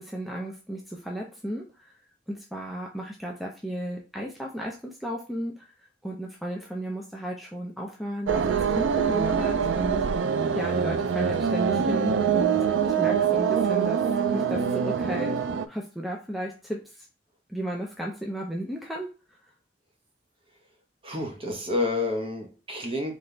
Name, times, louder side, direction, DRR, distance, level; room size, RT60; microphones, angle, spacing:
voice 1, 0.0-1.9 2.3-5.6 6.0-10.2 10.5-12.6 12.8-15.4 15.7-17.1 17.5-19.1, right 1 dB, ahead, -1 dB, 0.5 m, -34 dB
sound 1, 8.3-15.7, right 7 dB, 90° right, 0.4 m, -24 dB
voice 2, 21.0-23.1, left 2 dB, 30° right, 3 dB, 1.0 m, -29 dB
4.0 x 3.2 x 3.3 m, 0.33 s
head